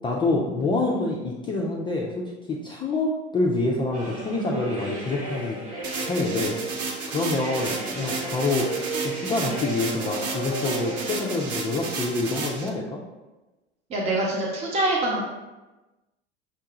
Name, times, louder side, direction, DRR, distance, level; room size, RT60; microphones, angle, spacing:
voice 1, 0.0-5.6 6.0-6.6 7.1-8.7 9.0-13.0, left 2 dB, 15° left, -3 dB, 0.3 m, -26 dB
sound 1, 3.9-11.7, right 2 dB, 70° right, 1.5 m, -34 dB
sound 2, 5.8-12.7, right 4 dB, 50° right, 0.8 m, -33 dB
voice 2, 13.9-15.2, right 2 dB, 20° right, -3 dB, 0.7 m, -24 dB
5.9 x 2.2 x 2.9 m, 1.1 s
figure-of-eight pair, 80°, 36 cm